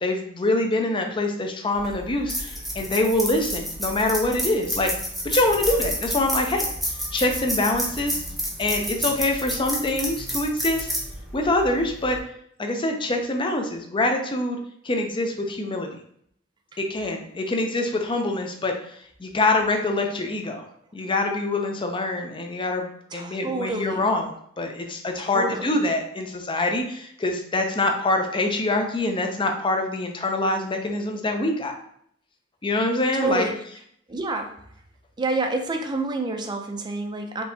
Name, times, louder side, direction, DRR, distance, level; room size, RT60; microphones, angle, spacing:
voice 1, 0.0-4.9 5.2-6.6 7.1-8.2 8.6-10.9 11.3-12.2 12.6-14.6 14.8-16.0 16.8-18.9 19.2-20.6 20.9-24.3 24.6-31.7 32.6-33.5, left 2 dB, 25° left, 4 dB, 0.5 m, -25 dB
sound 1, 1.7-12.2, equal, ahead, 0.8 m, -30 dB
voice 2, 23.1-24.1 25.2-25.8 33.1-33.5 34.1-34.6 35.2-37.4, right 2 dB, 20° right, 4 dB, 0.5 m, -28 dB
4.5 x 3.3 x 2.7 m, 0.68 s
head